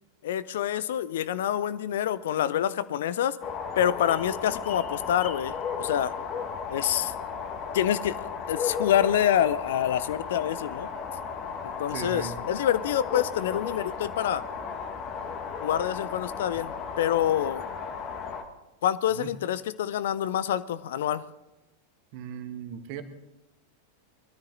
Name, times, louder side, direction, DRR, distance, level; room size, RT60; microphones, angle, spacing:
voice 1, 0.2-3.4 3.8-6.2 6.7-7.1 7.7-10.9 11.6-14.4 15.6-17.7 18.8-21.2, left 10 dB, 55° left, 18 dB, 0.5 m, -27 dB
sound 1, 3.4-18.4, left 6 dB, 35° left, 1.6 m, -35 dB
voice 2, 11.9-12.4 19.1-19.3 22.1-23.0, right 7 dB, 45° right, 8 dB, 1.4 m, -37 dB
21.5 x 13.0 x 3.9 m, 1.0 s
figure-of-eight pair, 90°, 0 cm